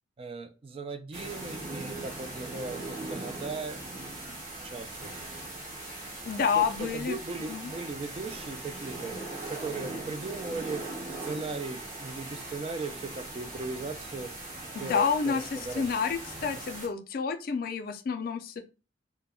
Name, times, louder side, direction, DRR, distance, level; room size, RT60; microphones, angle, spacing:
voice 1, 0.2-3.8 4.2-4.4 4.6-5.1 6.5-9.2 9.5-10.8 11.2-14.3 14.8-15.9, right 3 dB, 30° right, 8 dB, 0.3 m, -38 dB
sound 1, 1.1-16.9, right 2 dB, 50° right, 0.9 m, -40 dB
voice 2, 6.3-7.2 7.5-7.7 14.7-18.6, left 6 dB, 55° left, 8 dB, 0.4 m, -29 dB
2.3 x 2.0 x 3.5 m, 0.31 s
head